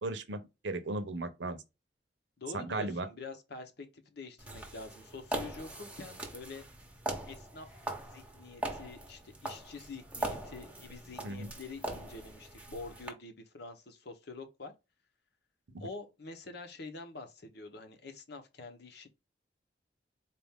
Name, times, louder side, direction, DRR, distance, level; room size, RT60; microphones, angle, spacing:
voice 1, 0.0-1.6 2.5-3.1 11.2-11.5 15.7-15.9, right 2 dB, 75° right, 0.8 m, -36 dB
voice 2, 2.4-6.7 7.3-7.7 8.0-14.7 15.8-19.1, left 3 dB, 65° left, 0.9 m, -46 dB
sound 1, 4.4-13.1, right 1 dB, 5° right, 0.9 m, -41 dB
4.3 x 2.5 x 3.5 m
head